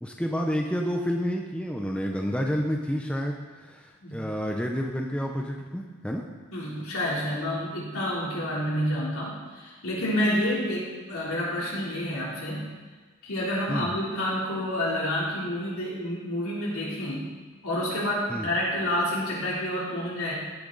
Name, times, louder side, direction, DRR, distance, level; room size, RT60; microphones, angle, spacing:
voice 1, 0.0-6.3 13.7-13.9 18.3-18.5, equal, 5° left, 1 dB, 0.6 m, -29 dB
voice 2, 6.5-12.7 13.2-17.2 17.6-20.3, left 1 dB, 75° left, -6 dB, 3.3 m, -29 dB
15.0 x 7.1 x 3.9 m, 1.4 s
head